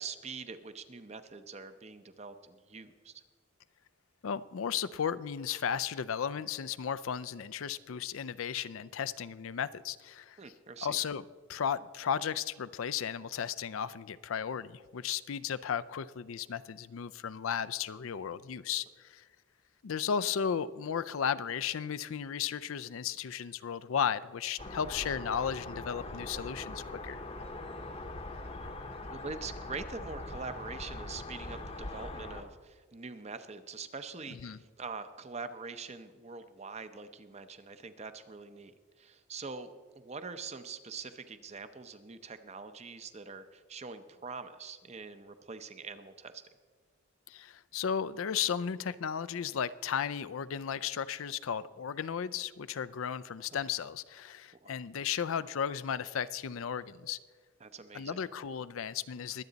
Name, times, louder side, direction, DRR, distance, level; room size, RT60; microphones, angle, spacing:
voice 1, 0.0-3.1 10.4-11.0 29.1-46.4 54.6-54.7 57.6-58.2, right 4 dB, 30° right, 10 dB, 0.6 m, -44 dB
voice 2, 4.2-10.4 10.8-11.2 11.5-19.2 19.8-27.2 34.3-34.6 47.3-57.2 57.9-59.4, left 7 dB, 75° left, 15 dB, 0.4 m, -35 dB
sound 1, 24.6-32.4, left 2 dB, 30° left, 0.8 m, -42 dB
22.5 x 8.4 x 4.0 m, 1.5 s
head